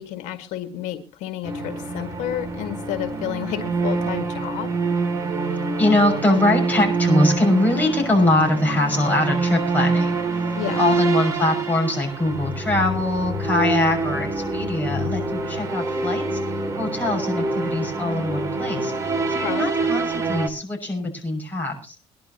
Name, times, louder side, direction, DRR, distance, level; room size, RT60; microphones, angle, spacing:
voice 1, 0.0-4.7 10.6-11.0 19.4-19.7, left 11 dB, 90° left, 8 dB, 1.8 m, -31 dB
sound 1, 1.4-20.5, right 3 dB, 25° right, 2.6 m, -25 dB
voice 2, 5.8-10.2 10.8-16.4 16.8-18.9 19.3-22.0, left 2 dB, 15° left, 0 dB, 6.2 m, -22 dB
23.0 x 11.5 x 2.9 m, 0.34 s
cardioid pair, 125°, 12 cm